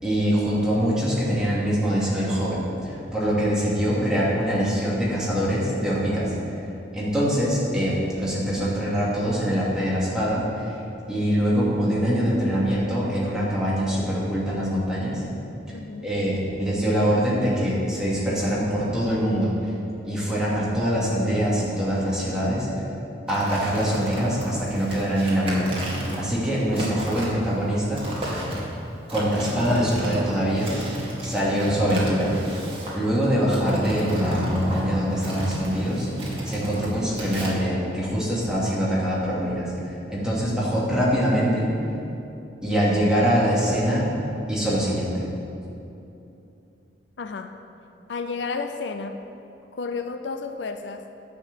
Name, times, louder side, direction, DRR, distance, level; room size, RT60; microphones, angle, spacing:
voice 1, 0.0-6.3 6.9-10.8 11.1-15.2 16.0-19.5 20.0-22.7 23.3-25.7 26.1-28.0 29.1-30.7 31.2-32.3 32.9-36.1 36.4-41.7 42.6-44.1 44.5-45.3, equal, 5° right, -8 dB, 2.5 m, -24 dB
voice 2, 15.7-16.1 47.2-47.6 48.1-49.2 49.7-51.1, left 4 dB, 80° left, 8 dB, 0.5 m, -32 dB
sound 1, 23.3-37.5, right 1 dB, 30° right, 2.0 m, -33 dB
10.0 x 6.0 x 7.6 m, 2.8 s
head